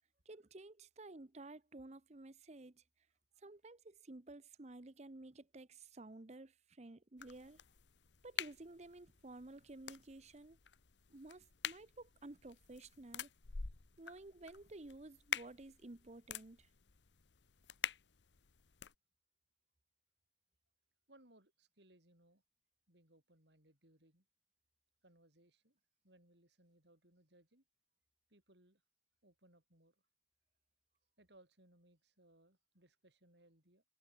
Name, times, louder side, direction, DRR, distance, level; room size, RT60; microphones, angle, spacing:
voice 1, 0.3-2.8 3.4-7.6 8.2-10.6 11.1-13.3 14.0-16.7, right 2 dB, 40° right, 0.9 m, -53 dB
sound 1, 7.2-18.9, left 8 dB, 90° left, 1.1 m, -48 dB
voice 2, 21.1-22.4 22.9-24.3 25.0-27.6 28.3-28.8 29.2-30.0 31.2-33.8, right 1 dB, 75° right, 7.1 m, -68 dB
head